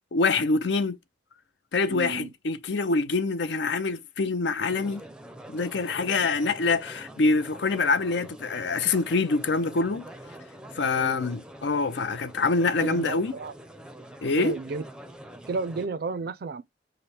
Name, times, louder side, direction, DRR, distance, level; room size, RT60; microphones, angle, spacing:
voice 1, 0.1-1.0 1.7-5.0 5.5-10.1 10.7-13.3 14.2-14.5, left 3 dB, 65° left, 0.5 m, -25 dB
voice 2, 1.9-2.3 6.2-6.3 10.8-11.2 12.8-13.5 14.0-14.1 14.4-14.8 15.5-16.6, right 4 dB, 55° right, 0.4 m, -33 dB
sound 1, 4.7-15.9, right 1 dB, 5° right, 0.5 m, -45 dB
5.0 x 2.1 x 4.2 m
head